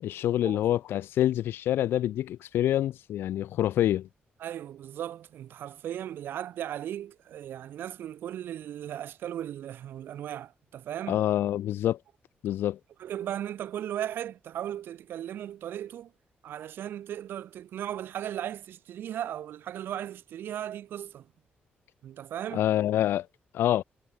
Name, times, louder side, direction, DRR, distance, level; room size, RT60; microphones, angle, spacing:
voice 1, 0.0-4.1 11.1-12.0 12.4-12.8 22.5-23.3 23.5-23.8, left 12 dB, 85° left, 0.6 m, -26 dB
voice 2, 4.4-11.2 13.0-16.1 16.4-21.3 22.0-22.6, right 11 dB, 70° right, 4.0 m, -37 dB
wide cardioid pair, 170°, 4 cm